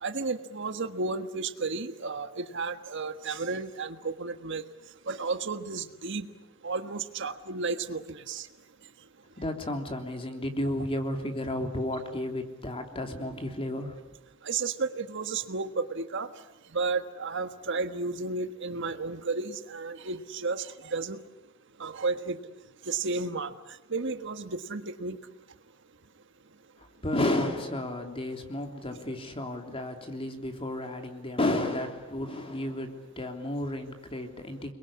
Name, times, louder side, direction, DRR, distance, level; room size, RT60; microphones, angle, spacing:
voice 1, 0.0-4.6 5.1-6.3 6.6-8.5 14.4-16.3 16.7-21.2 21.8-22.4 22.8-23.5 23.9-25.2, right 4 dB, 60° right, 9 dB, 1.5 m, -32 dB
voice 2, 9.4-14.0 27.0-34.7, left 1 dB, 30° left, 5 dB, 3.1 m, -32 dB
30.0 x 22.0 x 8.7 m, 0.97 s
head